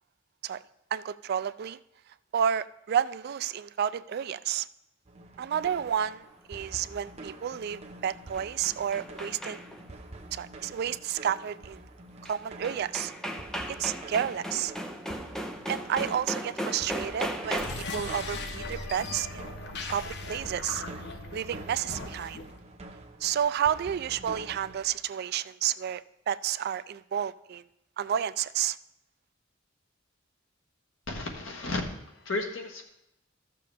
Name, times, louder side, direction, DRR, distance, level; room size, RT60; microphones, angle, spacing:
voice 1, 0.9-1.8 2.3-4.7 5.4-9.6 10.3-11.8 12.2-13.1 13.7-14.7 15.7-19.5 19.9-20.8 21.3-22.4 23.2-27.6 28.0-28.8, right 9 dB, 50° right, 15 dB, 0.3 m, -31 dB
sound 1, 5.1-24.9, right 2 dB, 30° right, 0.8 m, -47 dB
sound 2, 8.1-9.9 12.2-12.3 12.6-18.0, equal, 5° left, 0.6 m, -36 dB
sound 3, 17.5-22.6, left 2 dB, 60° left, 0.9 m, -38 dB
voice 2, 31.1-31.8 32.1-32.8, left 2 dB, 80° left, 2 dB, 1.5 m, -33 dB
13.5 x 6.7 x 3.5 m, 0.84 s
head